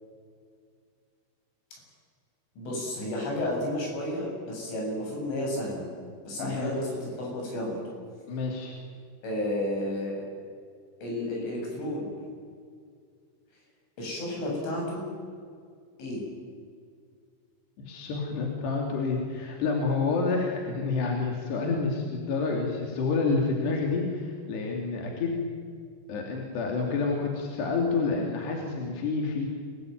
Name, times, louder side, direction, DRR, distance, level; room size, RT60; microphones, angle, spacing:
voice 1, 2.6-5.8 6.3-7.8 9.2-10.2 11.0-12.2 14.0-15.0 16.0-16.2, left 1 dB, 80° left, -1 dB, 10.0 m, -32 dB
voice 2, 6.4-6.7 8.3-8.7 17.9-25.4 26.1-29.5, left 4 dB, 65° left, 1 dB, 4.7 m, -28 dB
28.0 x 19.0 x 9.4 m, 2.2 s
omnidirectional pair, 5.4 m